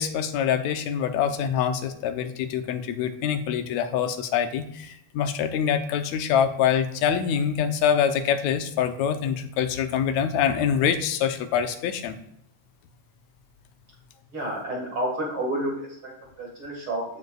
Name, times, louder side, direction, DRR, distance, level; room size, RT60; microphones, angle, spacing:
voice 1, 0.0-12.2, left 8 dB, 80° left, 8 dB, 2.0 m, -25 dB
voice 2, 14.3-17.2, right 1 dB, 50° right, -2 dB, 2.4 m, -30 dB
15.0 x 5.2 x 2.3 m, 0.77 s
omnidirectional pair, 3.3 m